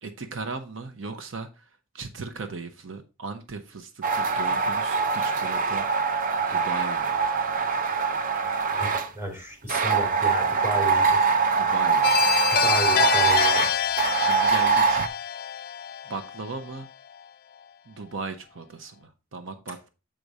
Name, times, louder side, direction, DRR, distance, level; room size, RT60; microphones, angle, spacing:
voice 1, 0.0-1.7 1.9-5.9 6.3-7.2 11.2-12.4 14.2-15.1 16.1-16.9 17.9-19.9, right 4 dB, 75° right, 8 dB, 0.8 m, -37 dB
sound 1, 4.0-9.1 9.7-15.1, right 5 dB, 45° right, 0.6 m, -23 dB
voice 2, 8.7-11.2 12.5-13.7, equal, 10° right, 0 dB, 3.2 m, -32 dB
sound 2, 12.0-16.8, left 9 dB, 50° left, 0.3 m, -26 dB
7.6 x 4.9 x 4.0 m, 0.30 s
head